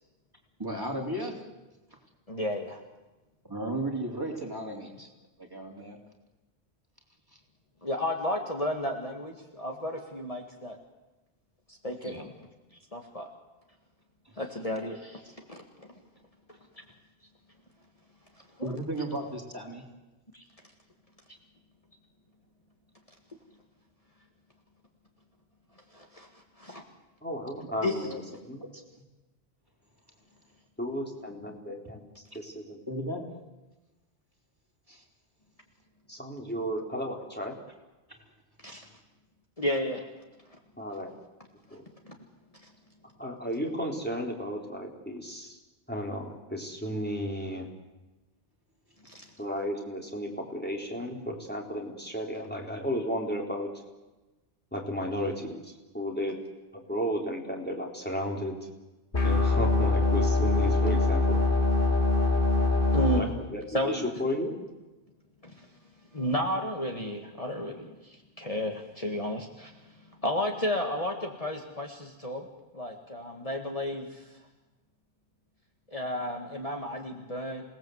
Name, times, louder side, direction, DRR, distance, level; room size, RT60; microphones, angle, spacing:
voice 1, 0.6-1.3 3.4-5.1 5.4-6.0 12.0-12.3 14.3-14.4 18.6-19.8 27.6-27.8 32.9-33.2 34.9-35.0 38.7-38.9, right 1 dB, 20° right, 0 dB, 3.7 m, -35 dB
voice 2, 2.3-2.8 7.8-10.8 11.7-12.3 12.9-13.3 14.4-15.6 18.6-18.8 20.3-20.4 25.9-26.3 26.6-26.8 27.8-28.1 38.6-38.8 39.6-40.0 42.1-42.2 49.0-49.2 62.9-63.4 63.7-64.0 65.4-65.7 66.1-69.8 70.2-72.4 72.7-74.4 75.9-77.6, left 1 dB, 35° left, 2 dB, 2.0 m, -32 dB
voice 3, 27.2-28.6 30.8-32.0 32.3-32.8 36.1-37.6 40.8-41.1 41.7-41.8 43.2-45.6 45.9-47.7 49.4-53.7 54.7-56.4 56.7-58.6 59.2-61.4 63.2-63.6 63.9-64.6, equal, 10° left, -1 dB, 4.0 m, -34 dB
sound 1, 59.1-63.2, left 3 dB, 50° left, 3.2 m, -23 dB
28.0 x 18.5 x 8.0 m, 1.1 s
omnidirectional pair, 1.1 m